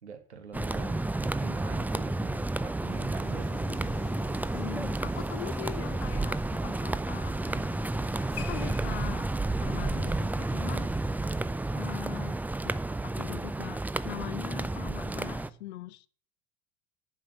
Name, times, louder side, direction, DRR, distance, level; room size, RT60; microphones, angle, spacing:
voice 1, 0.0-3.9, right 6 dB, 90° right, 6 dB, 1.7 m, -45 dB
sound 1, 0.5-15.5, right 2 dB, 5° right, 0.5 m, -31 dB
sound 2, 2.8-11.5, left 12 dB, 50° left, 1.0 m, -51 dB
voice 2, 4.5-9.3 9.6-10.9 11.7-12.4 12.6-12.7 13.0-16.1, left 16 dB, 75° left, 19 dB, 0.7 m, -42 dB
11.0 x 5.6 x 7.1 m, 0.43 s
hypercardioid pair, 70°, 33 cm